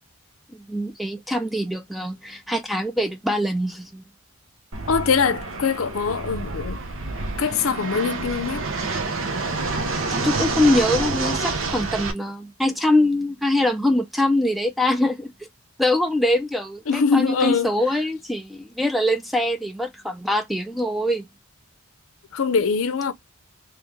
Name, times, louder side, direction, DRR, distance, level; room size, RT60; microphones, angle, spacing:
voice 1, 0.5-4.0 10.1-15.3 15.8-21.3, left 1 dB, ahead, 0.4 m, -23 dB
Fixed-wing aircraft airplane, 4.7-12.1, right 3 dB, 65° right, 0.8 m, -28 dB
voice 2, 4.9-6.8 7.4-8.7 16.9-17.7 22.3-23.1, left 5 dB, 70° left, 0.6 m, -22 dB
3.1 x 3.1 x 3.4 m
head